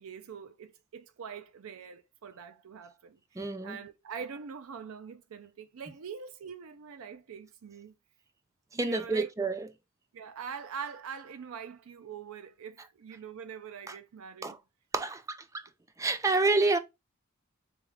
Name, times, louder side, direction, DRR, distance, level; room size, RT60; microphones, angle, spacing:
voice 1, 0.0-7.9 8.8-9.3 10.1-14.6 15.1-15.2, right 6 dB, 90° right, 0.5 m, -43 dB
voice 2, 3.4-3.8 8.7-9.7 13.9-14.0 14.4-14.6 14.9-15.6 16.0-16.8, right 3 dB, 15° right, 0.3 m, -28 dB
3.5 x 3.5 x 3.2 m
head